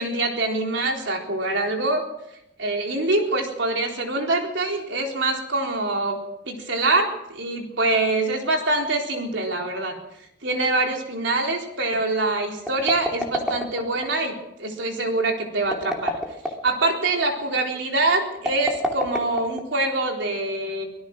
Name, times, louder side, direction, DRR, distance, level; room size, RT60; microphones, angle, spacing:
voice 1, 0.0-2.0 2.6-6.2 6.5-10.0 10.4-16.1 16.6-20.8, right 2 dB, 75° right, 2 dB, 4.0 m, -24 dB
sound 1, 12.7-14.1 15.6-16.7 18.4-19.9, equal, 5° right, 2.7 m, -28 dB
24.5 x 17.5 x 6.1 m, 0.81 s
head